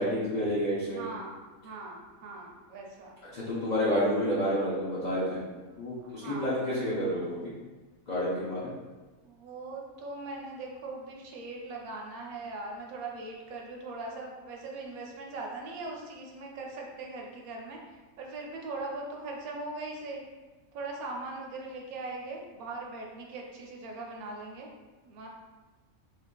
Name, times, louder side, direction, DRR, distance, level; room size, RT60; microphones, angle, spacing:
voice 1, 0.0-1.0 3.3-5.4 5.8-7.5 8.1-8.7, equal, 90° left, -8 dB, 0.3 m, -29 dB
voice 2, 0.8-3.2 6.0-6.6 9.2-20.2 20.7-24.7 25.0-25.3, right 2 dB, 85° right, 0 dB, 1.0 m, -40 dB
2.9 x 2.5 x 2.2 m, 1.3 s
omnidirectional pair, 1.5 m